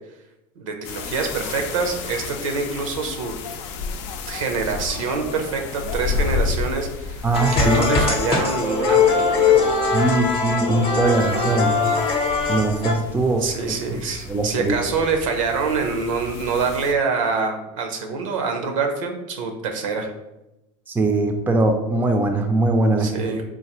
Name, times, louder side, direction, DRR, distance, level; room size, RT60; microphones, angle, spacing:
voice 1, 0.6-3.3 4.3-7.3 7.5-9.6 13.4-20.1 23.0-23.4, right 4 dB, 85° right, 4 dB, 0.7 m, -25 dB
sound 1, 0.8-16.9, left 5 dB, 65° left, 0.5 m, -32 dB
voice 2, 7.2-8.0 9.9-11.8 12.5-13.4 14.3-14.8 20.9-23.3, right 2 dB, 10° right, 4 dB, 0.4 m, -21 dB
sound 2, 7.3-12.9, left 5 dB, 35° left, 0.7 m, -20 dB
3.8 x 2.5 x 2.9 m, 0.94 s
hypercardioid pair, 100°, 16 cm